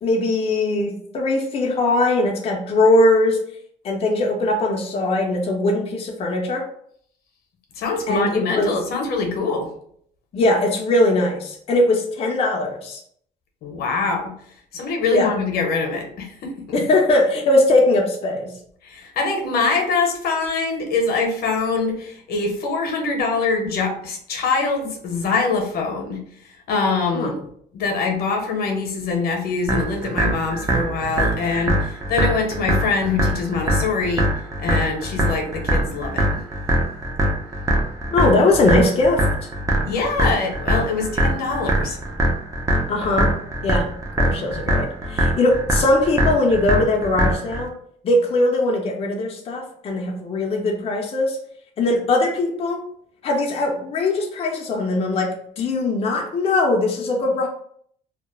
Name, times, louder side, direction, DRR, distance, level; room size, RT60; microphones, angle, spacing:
voice 1, 0.0-3.4 3.8-6.6 8.1-8.7 10.3-13.0 15.1-15.3 16.7-18.5 27.1-27.3 38.1-39.3 42.9-43.3 43.6-43.9 44.2-47.7 48.0-51.4 51.8-52.8 53.2-57.5, left 2 dB, 35° left, 1 dB, 0.4 m, -20 dB
voice 2, 7.8-9.7 13.6-14.3 14.7-16.5 18.8-26.2 26.7-27.4 27.7-34.3 34.6-36.3 39.8-42.0, left 4 dB, 65° left, 3 dB, 0.7 m, -24 dB
sound 1, 29.7-47.7, right 1 dB, 20° right, 0.5 m, -22 dB
2.2 x 2.0 x 3.0 m, 0.64 s
cardioid pair, 110°, 17 cm